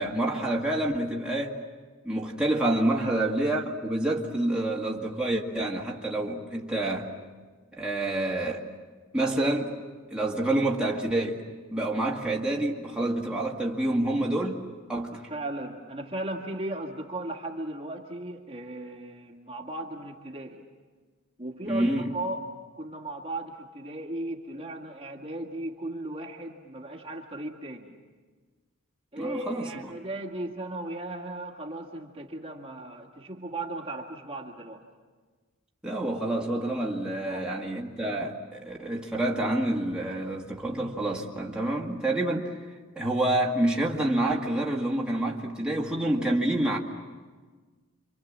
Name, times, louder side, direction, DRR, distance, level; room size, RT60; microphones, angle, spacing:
voice 1, 0.0-1.6 2.0-7.1 7.7-8.7 9.1-9.7 10.1-11.4 11.7-14.6 14.9-15.2 21.7-22.0 29.2-29.9 35.8-42.6 43.0-46.8, right 1 dB, 5° right, -3 dB, 2.1 m, -28 dB
voice 2, 15.3-20.6 21.4-22.5 22.8-27.9 29.1-34.8 37.2-37.5, right 1 dB, 25° right, 0 dB, 1.9 m, -36 dB
28.5 x 25.5 x 7.4 m, 1.4 s
head